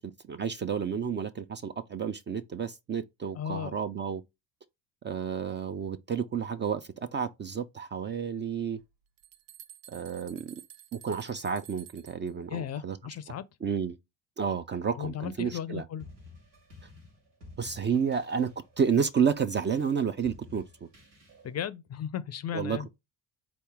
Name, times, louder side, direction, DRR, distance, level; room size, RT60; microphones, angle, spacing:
voice 1, 0.0-4.2 5.0-8.8 9.9-10.6 10.9-13.0 13.6-14.0 14.4-15.8 17.6-20.6 22.5-22.9, right 6 dB, 25° right, 0.4 m, -31 dB
voice 2, 3.3-3.7 12.5-13.4 15.0-16.0 21.4-22.9, left 9 dB, 35° left, 0.5 m, -35 dB
sound 1, 8.8-12.3, right 11 dB, 65° right, 0.7 m, -51 dB
sound 2, 16.0-21.6, left 3 dB, 85° right, 2.0 m, -53 dB
4.1 x 2.9 x 3.4 m
hypercardioid pair, 65°, 47 cm